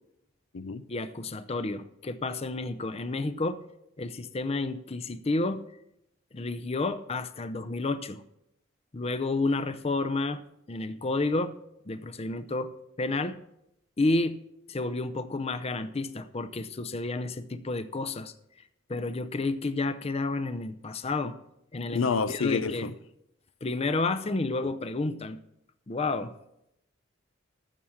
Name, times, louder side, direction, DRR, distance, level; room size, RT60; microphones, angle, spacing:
voice 1, 0.9-3.6 4.0-5.6 6.3-8.2 8.9-10.4 10.7-11.5 11.9-12.7 13.0-13.4 14.0-14.4 14.7-18.3 18.9-21.4 21.7-22.9 23.6-25.4 25.9-26.3, left 2 dB, 30° left, 0.6 m, -30 dB
voice 2, 21.9-22.9, left 5 dB, 85° left, 0.6 m, -28 dB
13.0 x 7.2 x 6.4 m
head